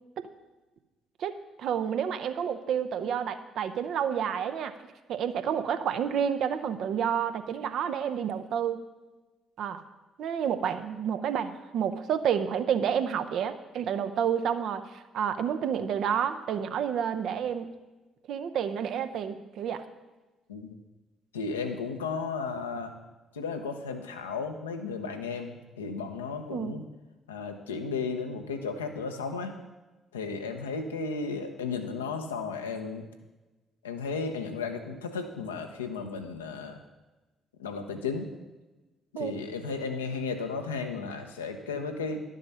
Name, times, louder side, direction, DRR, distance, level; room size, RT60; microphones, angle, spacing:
voice 1, 1.2-4.7 5.1-8.8 9.6-9.8 10.2-17.7 18.3-19.8 26.5-26.7 39.2-39.4, right 8 dB, 60° right, 9 dB, 0.8 m, -29 dB
voice 2, 21.3-22.9 23.3-26.8 27.3-29.5 30.1-33.1 33.8-36.8 37.6-38.3 39.1-42.2, left 4 dB, 85° left, 5 dB, 0.9 m, -34 dB
11.5 x 7.5 x 5.6 m, 1.2 s
figure-of-eight pair, 45°, 0 cm